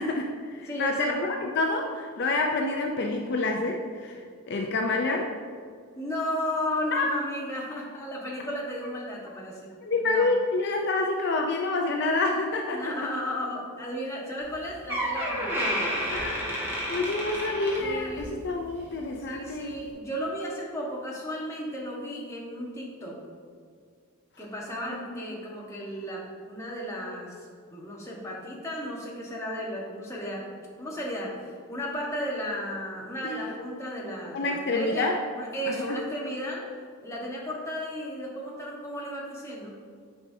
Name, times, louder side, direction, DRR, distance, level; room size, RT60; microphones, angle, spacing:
voice 1, 0.0-5.3 6.9-7.2 9.8-12.9 16.1-19.7 25.0-25.1 33.2-33.5 34.3-35.2 35.9-36.0, left 3 dB, 50° left, 1 dB, 0.5 m, -28 dB
voice 2, 0.7-1.2 5.9-9.7 10.0-10.3 12.7-15.5 17.8-18.3 19.3-23.2 24.4-30.4 30.8-31.3 31.7-36.6 37.0-39.8, equal, 15° left, -4 dB, 1.1 m, -34 dB
Door, 14.4-14.5 14.9-18.4 18.7-19.0 19.7-19.8, equal, 10° right, 1.4 m, -30 dB
9.5 x 5.4 x 2.7 m, 2.1 s
head